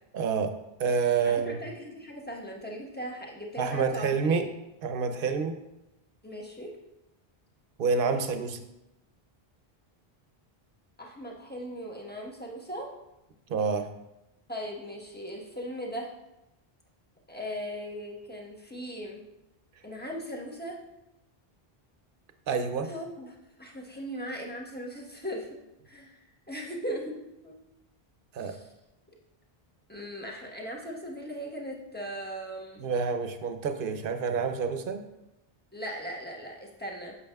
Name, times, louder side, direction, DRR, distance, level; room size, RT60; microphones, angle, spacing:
voice 1, 0.1-0.5 0.8-1.5 3.6-4.5 4.8-5.5 7.8-8.6 13.5-13.9 22.5-22.9 28.3-28.5 32.8-35.0, right 5 dB, 65° right, 7 dB, 0.8 m, -28 dB
voice 2, 1.2-4.4 6.2-6.7 11.0-12.9 14.5-16.1 17.3-19.2 19.8-20.8 22.8-25.5 25.9-27.2 27.4-27.6 28.4-28.7 29.9-32.9 35.7-37.1, equal, 10° left, -2 dB, 1.0 m, -38 dB
8.7 x 6.7 x 2.3 m, 0.91 s
omnidirectional pair, 1.0 m